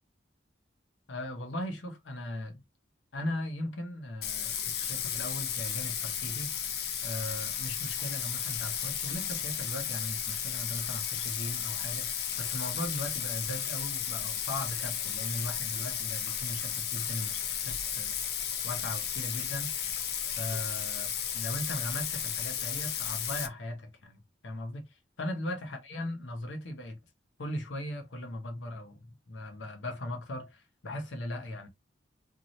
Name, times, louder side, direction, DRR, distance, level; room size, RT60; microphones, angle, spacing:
voice 1, 1.1-2.6 3.1-6.5 7.0-18.1 18.6-19.7 20.4-27.0 27.4-31.7, left 1 dB, 85° left, 0.9 m, -38 dB
Bathtub (filling or washing), 4.2-23.5, left 8 dB, 55° left, 0.5 m, -34 dB
2.6 x 2.4 x 3.1 m
head